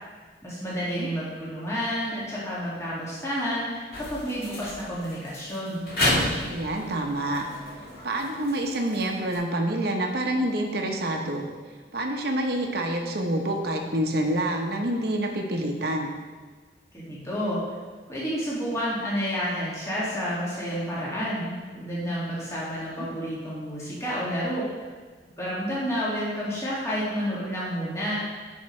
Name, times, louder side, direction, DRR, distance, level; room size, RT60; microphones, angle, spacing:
voice 1, 0.4-5.9 16.9-17.6 18.1-24.7 25.4-28.2, equal, 15° left, -8 dB, 2.1 m, -30 dB
sound 1, 3.9-9.4, left 1 dB, 55° left, 1.9 m, -31 dB
voice 2, 6.4-7.5 8.0-11.5 11.9-16.1 23.0-23.1, right 1 dB, 60° right, 2 dB, 1.0 m, -27 dB
10.5 x 5.6 x 3.3 m, 1.4 s
head